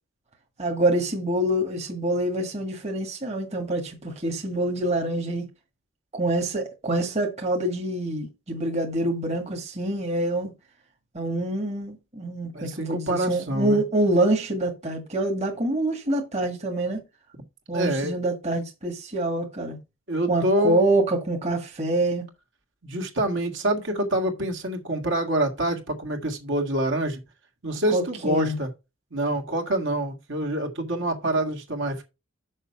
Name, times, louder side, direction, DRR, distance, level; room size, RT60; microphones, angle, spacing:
voice 1, 0.6-5.4 6.1-10.5 11.1-17.0 17.7-19.8 20.3-22.3 27.9-28.6, right 1 dB, 30° right, 1.7 m, -26 dB
voice 2, 12.5-13.8 17.7-18.1 20.1-20.8 22.8-27.2 27.6-28.7 29.1-32.0, right 1 dB, 55° right, 1.8 m, -26 dB
6.5 x 5.7 x 5.7 m
head